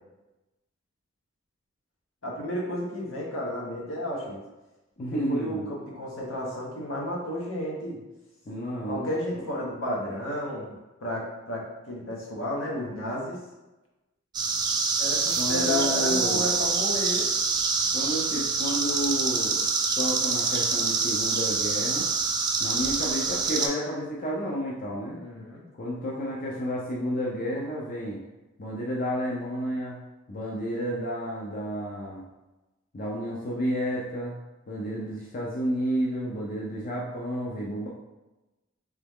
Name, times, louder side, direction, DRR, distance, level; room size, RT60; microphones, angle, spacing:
voice 1, 2.2-4.4 5.1-8.0 8.9-10.7 11.0-13.4 15.0-17.3 25.1-25.7, left 1 dB, 80° left, -3 dB, 1.1 m, -32 dB
voice 2, 5.0-5.7 8.5-9.4 15.4-16.4 17.9-19.6 20.0-22.1 22.6-25.2 25.7-28.2 28.6-30.0 30.3-32.2 32.9-34.3 34.7-37.9, equal, 45° left, -4 dB, 0.6 m, -31 dB
sound 1, 14.3-23.7, right 4 dB, 20° right, 0.4 m, -26 dB
3.5 x 3.0 x 3.5 m, 1.1 s
head